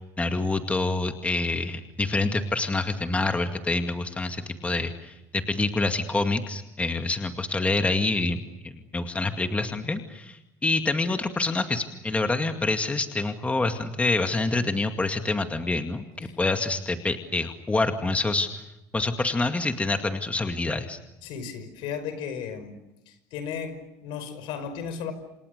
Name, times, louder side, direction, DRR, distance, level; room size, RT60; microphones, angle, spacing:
voice 1, 0.0-18.6 18.9-21.0, left 3 dB, 15° left, 6 dB, 2.2 m, -27 dB
voice 2, 21.2-22.8 23.1-25.1, left 7 dB, 70° left, 11 dB, 5.5 m, -35 dB
28.5 x 28.0 x 6.7 m, 0.91 s
supercardioid pair, 105°, 9 cm